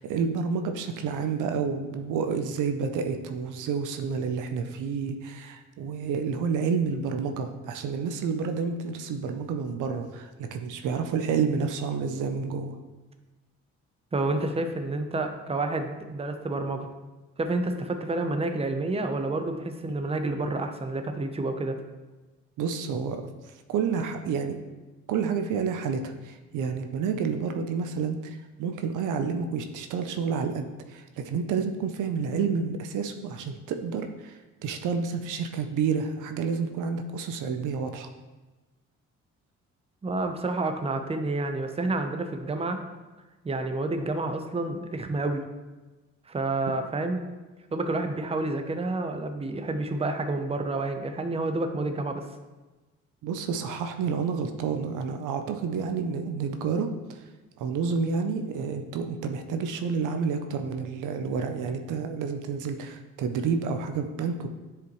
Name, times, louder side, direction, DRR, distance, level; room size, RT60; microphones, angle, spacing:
voice 1, 0.0-12.8 22.6-23.3 23.7-24.6 25.1-38.1 53.2-57.2 57.6-64.5, right 5 dB, 85° right, 7 dB, 0.7 m, -29 dB
voice 2, 14.1-16.9 17.4-21.8 40.0-42.8 43.4-45.4 46.3-47.3 47.7-52.3, right 2 dB, 20° right, 6 dB, 0.7 m, -29 dB
9.9 x 4.9 x 3.1 m, 1.2 s
cardioid pair, 90°, 30 cm